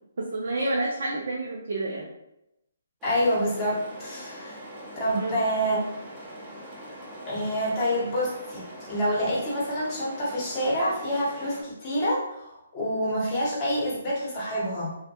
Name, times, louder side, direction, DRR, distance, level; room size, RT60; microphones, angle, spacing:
voice 1, 0.2-2.1 5.1-5.4, right 2 dB, 65° right, -2 dB, 0.4 m, -29 dB
voice 2, 3.0-4.6 5.0-5.8 7.3-14.9, equal, 25° left, -6 dB, 1.0 m, -27 dB
sound 1, 3.0-11.6, equal, 15° right, 0.7 m, -42 dB
2.2 x 2.1 x 2.8 m, 0.85 s
figure-of-eight pair, 145°, 0 cm